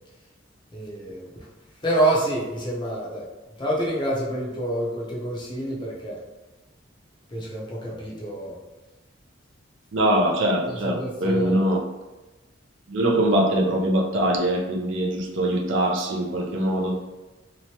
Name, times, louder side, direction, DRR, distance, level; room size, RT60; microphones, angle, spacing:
voice 1, 0.7-1.3 1.8-3.3 3.6-6.2 7.3-8.6 10.7-11.7, right 1 dB, 25° left, 0.6 m, -27 dB
voice 2, 9.9-11.8 12.9-17.0, right 1 dB, 70° right, 0.4 m, -22 dB
3.0 x 2.1 x 2.8 m
head